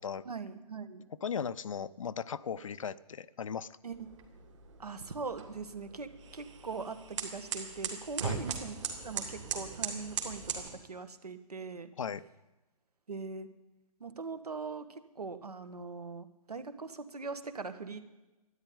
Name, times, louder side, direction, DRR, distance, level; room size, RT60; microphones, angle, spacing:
voice 1, 0.2-1.0 3.8-4.1 4.8-8.8 9.0-11.9 13.1-13.5 14.0-18.0, right 4 dB, 70° right, 10 dB, 1.6 m, -41 dB
voice 2, 1.2-3.7 8.2-8.4 12.0-12.2, left 7 dB, 55° left, 16 dB, 0.6 m, -37 dB
sound 1, 3.9-10.7, right 6 dB, 45° right, 3.1 m, -40 dB
13.0 x 10.5 x 9.6 m, 1.1 s
figure-of-eight pair, 130°, 21 cm